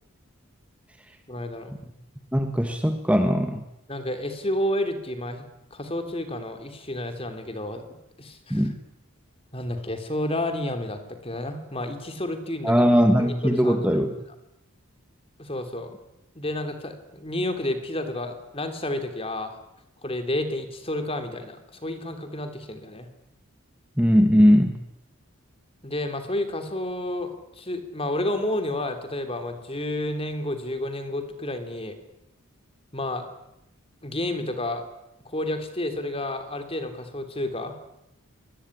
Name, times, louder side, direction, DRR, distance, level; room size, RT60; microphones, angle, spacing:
voice 1, 1.3-1.7 3.9-8.7 9.5-12.7 13.1-14.0 15.4-15.9 16.3-19.5 20.0-23.1 25.8-32.0 32.9-33.3 34.0-34.8 35.2-37.8, left 1 dB, 25° left, 8 dB, 3.2 m, -30 dB
voice 2, 2.3-3.6 8.5-8.7 12.6-14.1 24.0-24.7, equal, 5° right, 6 dB, 1.5 m, -19 dB
25.0 x 20.5 x 9.9 m, 0.85 s
head